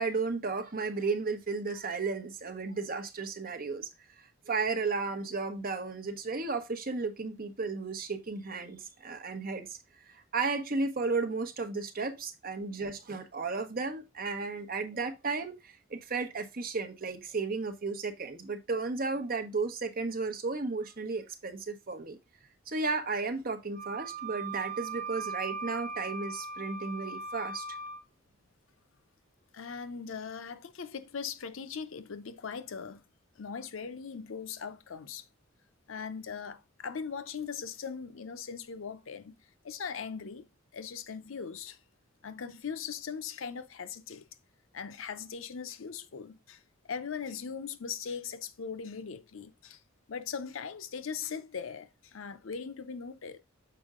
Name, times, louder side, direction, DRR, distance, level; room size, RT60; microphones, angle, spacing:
voice 1, 0.0-3.9 4.2-9.8 10.1-22.2 22.7-27.6, right 4 dB, 45° right, 1.0 m, -34 dB
Wind instrument woodwind instrument, 23.7-28.0, right 4 dB, 45° left, 2.6 m, -39 dB
voice 2, 29.5-33.0 33.4-35.2 35.9-39.4 39.6-40.5 40.7-41.8 42.2-44.3 44.7-46.6 46.9-49.8 50.1-53.4, left 6 dB, 75° left, 0.6 m, -40 dB
6.8 x 4.4 x 3.6 m
head